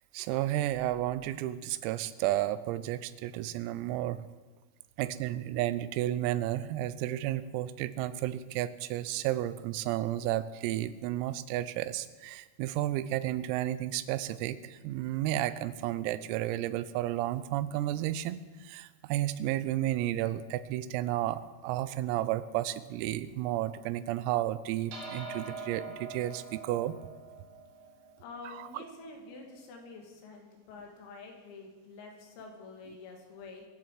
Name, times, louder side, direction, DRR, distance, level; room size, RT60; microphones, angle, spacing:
voice 1, 0.1-4.3 5.0-26.9, right 14 dB, 90° right, 15 dB, 3.4 m, -32 dB
sound 1, 24.9-29.6, right 4 dB, 60° right, 4.3 m, -45 dB
voice 2, 28.2-33.7, left 3 dB, 85° left, 1 dB, 5.2 m, -48 dB
23.5 x 7.8 x 7.5 m, 1.3 s
omnidirectional pair, 5.9 m